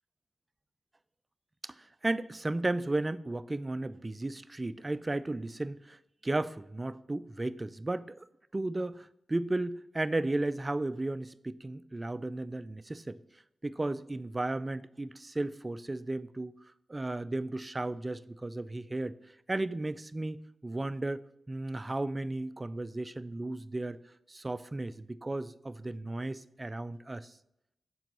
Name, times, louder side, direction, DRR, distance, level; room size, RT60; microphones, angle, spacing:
voice 1, 1.6-8.3 8.5-13.2 13.6-16.5 16.9-19.2 19.5-21.2 21.5-24.0 24.3-27.3, right 2 dB, 30° right, 15 dB, 0.3 m, -34 dB
6.1 x 4.5 x 5.2 m, 0.83 s
cardioid pair, 50°, 0 cm